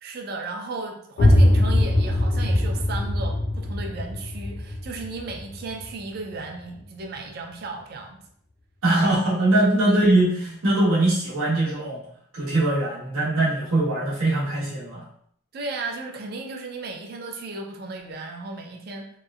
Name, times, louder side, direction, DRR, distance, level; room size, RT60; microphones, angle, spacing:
voice 1, 0.0-8.2 9.9-10.0 15.5-19.1, right 3 dB, 45° right, 2 dB, 0.3 m, -35 dB
sound 1, 1.2-6.8, left 1 dB, 45° left, 0.4 m, -22 dB
voice 2, 8.8-12.0 12.3-15.0, right 1 dB, 85° right, -8 dB, 0.9 m, -21 dB
2.9 x 2.0 x 2.3 m, 0.66 s
head